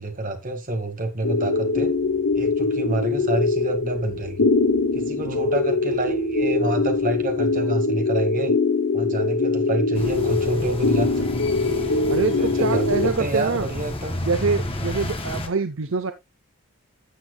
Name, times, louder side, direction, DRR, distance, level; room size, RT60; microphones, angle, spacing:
voice 1, 0.0-1.9 2.3-4.5 4.9-8.5 8.9-11.5 12.4-14.2, right 1 dB, 40° right, 1.8 m, -28 dB
sound 1, 1.2-13.1, left 3 dB, 80° left, 1.0 m, -22 dB
sound 2, 1.7-7.6, right 3 dB, 90° right, 3.7 m, -44 dB
sound 3, 9.9-15.5, left 1 dB, 25° left, 1.5 m, -31 dB
voice 2, 12.1-13.7 14.2-16.1, right 4 dB, 60° right, 0.7 m, -25 dB
13.5 x 7.4 x 2.3 m
head